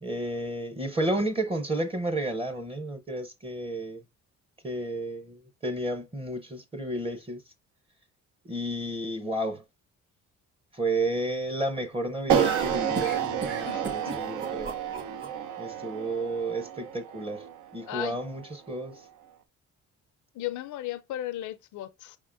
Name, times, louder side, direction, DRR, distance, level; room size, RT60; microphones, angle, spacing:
voice 1, 0.0-4.0 4.6-7.4 8.4-9.6 10.7-14.7 15.6-17.5 17.7-19.0, right 1 dB, 20° right, 0.7 m, -32 dB
sound 1, 12.3-15.3, right 4 dB, 40° right, 1.4 m, -34 dB
sound 2, 12.3-18.5, right 9 dB, 80° right, 0.6 m, -30 dB
voice 2, 13.6-14.2 17.9-18.2 20.3-22.2, left 13 dB, 75° left, 0.5 m, -36 dB
5.2 x 3.6 x 2.5 m
cardioid pair, 90°, 30 cm